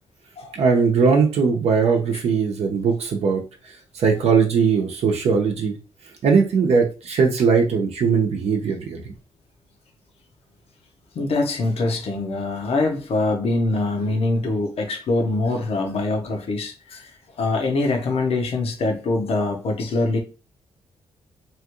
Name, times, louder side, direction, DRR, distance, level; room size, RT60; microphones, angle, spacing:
voice 1, 0.5-3.4 4.0-5.7 6.2-9.0, right 5 dB, 70° right, 0.7 m, -19 dB
voice 2, 11.1-17.1 17.4-20.2, left 2 dB, 65° left, 0.8 m, -23 dB
3.0 x 2.4 x 3.0 m
cardioid pair, 105°, 11 cm